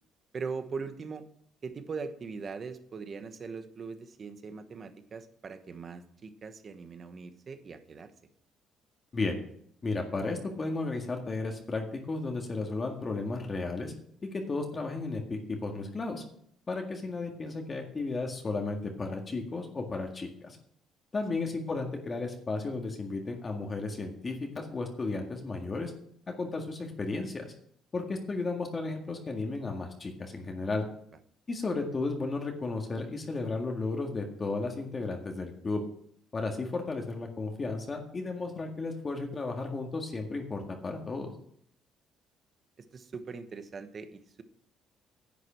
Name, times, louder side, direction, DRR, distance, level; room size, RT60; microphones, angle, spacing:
voice 1, 0.3-1.2 1.6-8.1 42.9-44.4, right 5 dB, 40° right, 9 dB, 1.2 m, -40 dB
voice 2, 9.8-13.9 14.3-16.2 16.7-20.6 21.1-25.9 26.4-27.5 27.9-30.8 31.5-35.8 36.3-41.3, left 3 dB, 30° left, 2 dB, 1.9 m, -34 dB
10.5 x 7.9 x 6.2 m, 0.64 s
cardioid pair, 115°, 0 cm